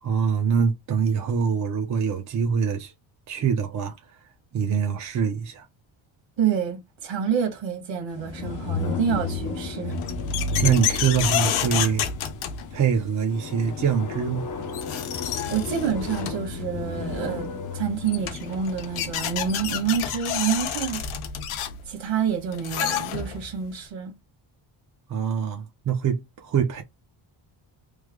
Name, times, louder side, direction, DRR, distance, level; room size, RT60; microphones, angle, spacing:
voice 1, 0.0-2.9 3.3-4.2 4.5-5.7 10.6-12.1 12.7-14.5 15.4-15.5 25.1-26.8, right 7 dB, 35° right, 0.6 m, -24 dB
voice 2, 6.4-10.0 15.5-17.5 17.7-21.0 21.9-24.1, right 7 dB, 60° right, 1.5 m, -27 dB
sound 1, 8.1-20.1, left 4 dB, 40° left, 0.7 m, -33 dB
sound 2, 9.9-13.0 14.3-14.4 14.7-16.5 17.7-17.8 18.1-23.5, left 10 dB, 80° left, 0.8 m, -29 dB
3.2 x 2.2 x 3.5 m
cardioid pair, 155°, 49 cm